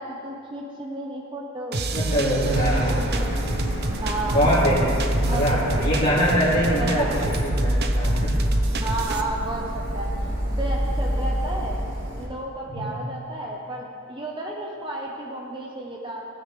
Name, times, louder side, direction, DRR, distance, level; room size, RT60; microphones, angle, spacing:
voice 1, 0.0-3.3 4.0-4.5 5.3-5.8 6.8-7.1 8.8-11.8 12.2-16.2, right 2 dB, 25° right, -2 dB, 1.0 m, -32 dB
sound 1, 1.7-9.2, right 2 dB, 55° right, 0.7 m, -29 dB
voice 2, 1.9-3.3 4.3-4.8 5.1-8.3 12.7-12.9, equal, 45° left, -10 dB, 2.8 m, -23 dB
Printer, 1.9-12.2, equal, 85° right, 2.9 m, -26 dB
17.5 x 9.6 x 3.4 m, 2.8 s
head